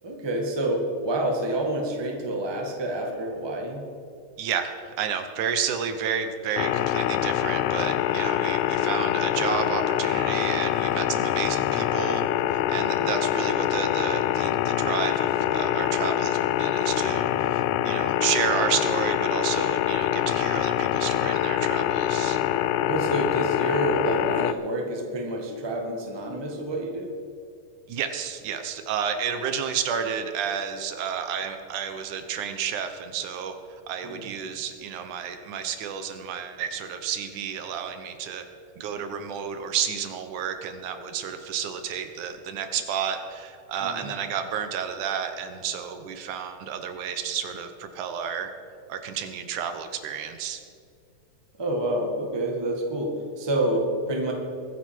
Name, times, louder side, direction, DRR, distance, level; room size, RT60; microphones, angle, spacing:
voice 1, 0.0-3.9 11.0-11.3 12.9-13.2 22.9-27.1 34.0-34.3 43.8-44.1 51.5-54.3, right 1 dB, 10° right, 1 dB, 1.2 m, -28 dB
voice 2, 4.4-12.2 12.5-22.4 27.9-38.5 38.8-48.5 48.9-50.6, right 7 dB, 75° right, 7 dB, 2.4 m, -31 dB
sound 1, 6.6-24.5, left 12 dB, 80° left, 1.9 m, -25 dB
22.5 x 10.0 x 4.6 m, 2.4 s
omnidirectional pair, 3.7 m